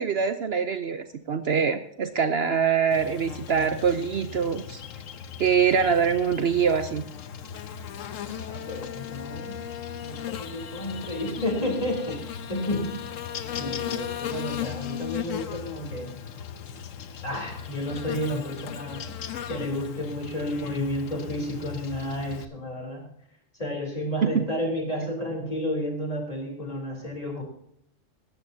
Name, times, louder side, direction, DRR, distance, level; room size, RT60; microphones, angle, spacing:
voice 1, 0.0-4.8 5.4-7.0 24.2-24.5, right 6 dB, 60° right, 9 dB, 0.9 m, -24 dB
Buzz, 2.9-22.4, left 8 dB, 90° left, 1.2 m, -37 dB
voice 2, 8.2-9.6 10.0-13.0 13.6-16.2 17.2-19.2 19.5-23.1 23.6-27.4, left 1 dB, 30° left, 0 dB, 3.8 m, -31 dB
18.0 x 13.0 x 2.8 m, 0.73 s
omnidirectional pair, 1.3 m